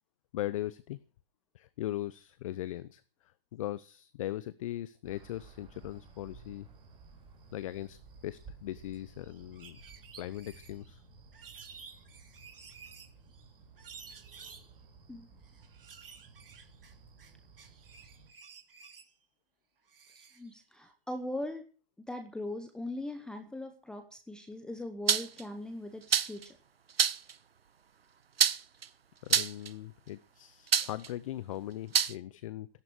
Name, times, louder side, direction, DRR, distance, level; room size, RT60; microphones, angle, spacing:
voice 1, 0.3-1.0 1.5-3.0 3.5-6.7 7.5-9.8 10.2-11.0 29.2-32.7, left 14 dB, 35° left, 17 dB, 0.7 m, -39 dB
sound 1, 5.0-18.3, right 4 dB, 15° right, 4.7 m, -56 dB
sound 2, 8.9-9.0 9.2-11.0 11.3-13.4 13.8-14.7 15.4-17.3 17.6-19.1 19.9-20.5, right 6 dB, 65° right, 3.3 m, -52 dB
voice 2, 20.4-21.6 22.1-26.6, left 1 dB, 5° left, 7 dB, 0.9 m, -40 dB
sound 3, 25.1-25.4 26.1-26.4 27.0-27.3 28.4-28.8 29.3-29.7 30.7-31.1 31.9-32.1, right 7 dB, 80° right, 1.0 m, -26 dB
16.0 x 11.0 x 6.1 m, 0.39 s
hypercardioid pair, 140°, 29 cm